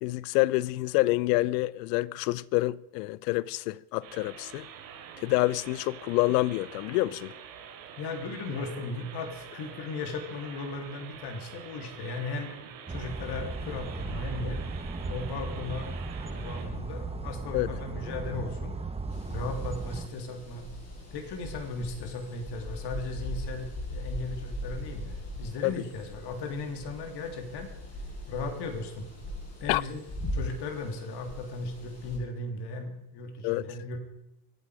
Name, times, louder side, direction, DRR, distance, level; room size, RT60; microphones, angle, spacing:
voice 1, 0.0-4.7 5.2-7.3 17.5-17.8 25.6-25.7 29.7-29.8 33.4-33.7, left 19 dB, 75° left, 0.6 m, -27 dB
sound 1, 4.0-16.6, right 7 dB, 90° right, 3.2 m, -46 dB
voice 2, 8.0-12.5 12.9-14.6 15.0-15.9 16.2-18.7 19.3-20.6 21.1-27.7 28.3-29.0 29.6-30.0 30.3-34.0, left 3 dB, 55° left, 3.2 m, -36 dB
sound 2, 12.9-20.1, right 3 dB, 10° right, 1.1 m, -36 dB
sound 3, 19.1-32.2, equal, 30° left, 6.6 m, -40 dB
24.5 x 9.0 x 4.9 m
supercardioid pair, 95°, 49 cm